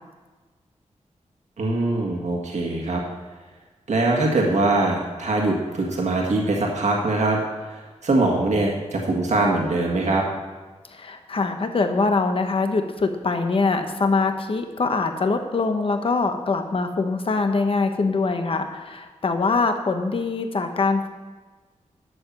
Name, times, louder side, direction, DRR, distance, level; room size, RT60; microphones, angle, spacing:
voice 1, 1.6-3.0 3.9-10.2, right 2 dB, 70° right, -1 dB, 1.7 m, -22 dB
voice 2, 10.9-21.1, left 3 dB, 45° left, 6 dB, 1.0 m, -23 dB
11.0 x 6.9 x 7.3 m, 1.3 s
wide cardioid pair, 150°, 12 cm